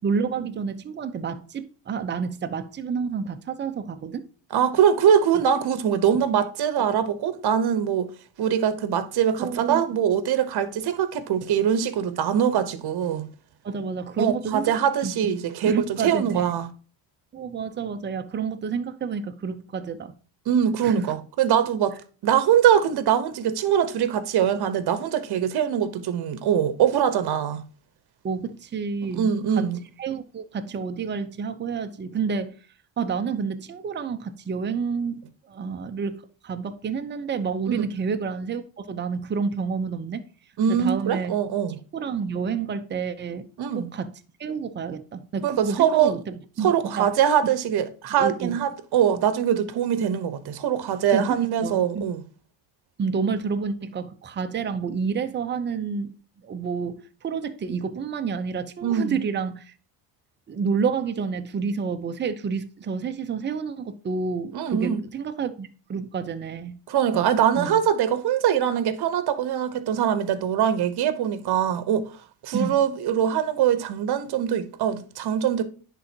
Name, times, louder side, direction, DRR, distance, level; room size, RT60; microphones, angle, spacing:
voice 1, 0.0-4.3 9.4-9.8 13.6-14.7 15.0-15.3 15.6-16.6 17.3-20.1 20.8-21.1 28.2-29.7 30.0-32.6 33.0-40.2 40.7-41.3 41.9-43.5 43.8-44.1 44.4-47.1 48.2-48.6 51.1-52.1 53.0-56.1 56.4-59.7 60.5-66.8 67.1-67.3 67.5-67.8 72.5-72.8, right 5 dB, 25° right, 0.6 m, -29 dB
voice 2, 4.5-8.1 8.4-13.3 14.2-16.7 20.5-22.0 22.2-27.6 29.1-29.8 37.7-37.9 40.6-41.8 43.6-43.9 45.4-46.2 46.6-52.2 58.8-59.2 64.5-65.0 66.9-72.1 72.4-75.6, right 9 dB, 55° right, 1.0 m, -23 dB
10.0 x 3.9 x 2.8 m
cardioid pair, 100°, 47 cm